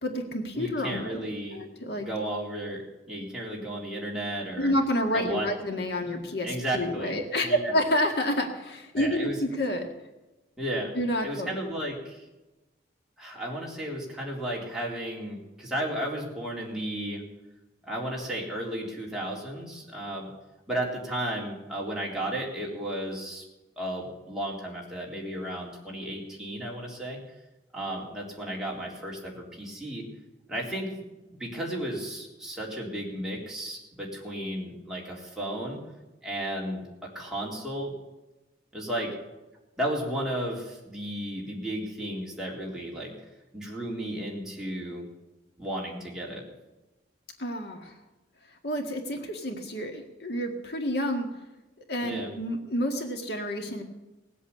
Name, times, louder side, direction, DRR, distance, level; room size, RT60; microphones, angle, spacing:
voice 1, 0.0-1.2 1.5-2.1 4.6-9.9 11.0-11.6 47.4-48.0 48.6-51.3 51.9-53.8, equal, 65° left, 3 dB, 1.9 m, -29 dB
voice 2, 0.5-1.6 2.0-4.7 5.1-5.5 6.1-6.2 6.4-7.7 8.9-9.4 10.6-10.9 11.2-12.3 13.2-17.2 17.9-20.3 20.7-23.4 23.8-27.2 27.7-30.1 30.5-30.9 31.3-35.8 36.2-37.9 38.7-39.1 39.8-43.1 43.5-45.0 45.6-46.4 52.0-52.3, right 1 dB, 5° right, -4 dB, 3.7 m, -34 dB
19.0 x 8.3 x 8.5 m, 1.1 s
head